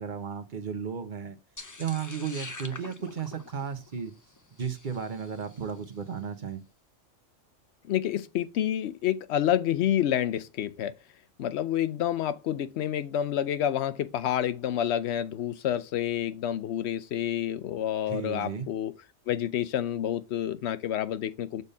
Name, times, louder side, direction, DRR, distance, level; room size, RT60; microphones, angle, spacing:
voice 1, 0.0-1.4 1.8-4.1 4.6-6.6 18.1-18.7, right 7 dB, 40° right, 0.9 m, -34 dB
sound 1, 1.6-5.9, left 3 dB, 20° left, 0.5 m, -45 dB
voice 2, 7.9-10.9 11.4-18.9 19.3-21.6, left 11 dB, 65° left, 0.8 m, -28 dB
6.8 x 3.6 x 5.4 m
omnidirectional pair, 1.3 m